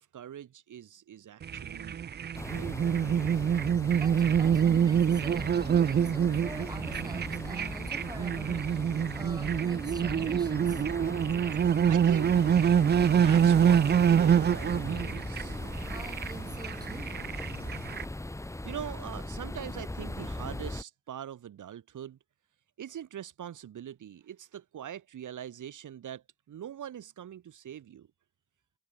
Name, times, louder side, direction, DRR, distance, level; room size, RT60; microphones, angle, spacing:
voice 1, 0.0-2.0 2.5-3.3 11.8-12.7 13.1-15.6 18.6-22.2 22.8-28.1, right 10 dB, 90° right, 5.9 m, -43 dB
sound 1, 1.4-18.0, right 8 dB, 35° right, 0.4 m, -26 dB
sound 2, 2.3-20.8, left 1 dB, 10° left, 2.0 m, -39 dB
voice 2, 4.0-10.9 15.8-17.4, right 2 dB, 15° right, 7.1 m, -46 dB
wide cardioid pair, 135°, 30 cm